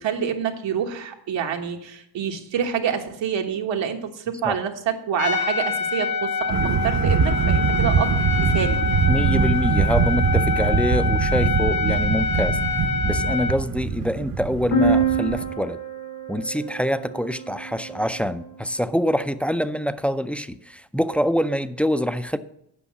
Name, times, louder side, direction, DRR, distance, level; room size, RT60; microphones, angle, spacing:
voice 1, 0.0-8.8, right 8 dB, 75° right, 1.4 m, -27 dB
Trumpet, 5.2-13.6, left 4 dB, 40° left, 0.9 m, -26 dB
sound 1, 6.5-15.5, right 5 dB, 45° right, 0.9 m, -22 dB
voice 2, 9.1-12.6 13.0-15.8 16.3-22.4, equal, 5° left, 0.4 m, -25 dB
sound 2, 14.7-18.5, right 3 dB, 80° left, 3.4 m, -26 dB
8.4 x 5.5 x 7.2 m
cardioid pair, 75°, 45 cm